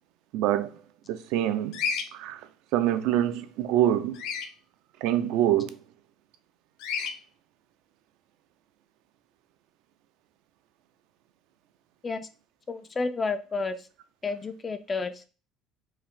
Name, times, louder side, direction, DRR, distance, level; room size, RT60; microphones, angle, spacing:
voice 1, 0.3-0.8 1.1-1.8 2.1-2.4 2.7-4.2 5.0-5.8, right 12 dB, 70° right, 0.4 m, -25 dB
Bird vocalization bird call bird song, 1.7-2.1 4.1-4.5 6.8-7.1, left 6 dB, 65° left, 0.7 m, -30 dB
voice 2, 12.7-13.9 14.2-15.3, left 4 dB, 15° left, 0.3 m, -31 dB
4.5 x 2.7 x 3.6 m
cardioid pair, 175°, 0 cm